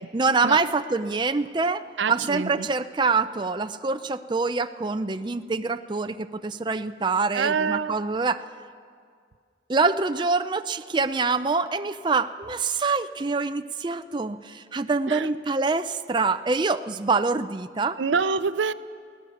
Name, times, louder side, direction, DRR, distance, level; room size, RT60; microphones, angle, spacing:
voice 1, 0.1-8.4 9.7-18.0, right 4 dB, 25° right, 9 dB, 0.4 m, -25 dB
voice 2, 2.0-2.7 7.3-8.1 15.1-15.3 18.0-18.7, right 5 dB, 85° right, 14 dB, 0.6 m, -26 dB
21.5 x 17.0 x 7.1 m, 2.1 s
head